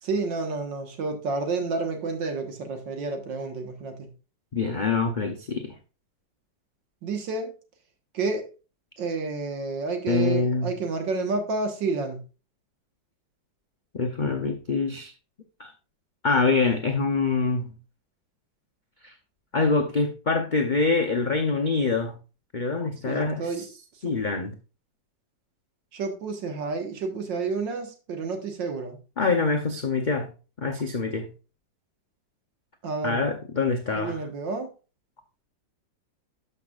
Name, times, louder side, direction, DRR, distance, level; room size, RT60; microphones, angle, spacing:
voice 1, 0.0-4.1 7.0-7.5 8.1-8.5 9.0-12.2 23.0-23.7 23.9-24.2 25.9-29.0 32.8-33.2 33.9-34.7, right 4 dB, 75° right, 5 dB, 2.0 m, -30 dB
voice 2, 4.5-5.7 10.1-10.8 13.9-15.1 15.6-15.7 16.2-17.8 19.0-19.1 19.5-22.2 22.5-23.4 24.0-24.5 29.2-30.3 30.6-31.3 33.0-34.2, left 4 dB, 80° left, 3 dB, 0.4 m, -25 dB
12.0 x 5.9 x 2.4 m, 0.33 s
omnidirectional pair, 2.0 m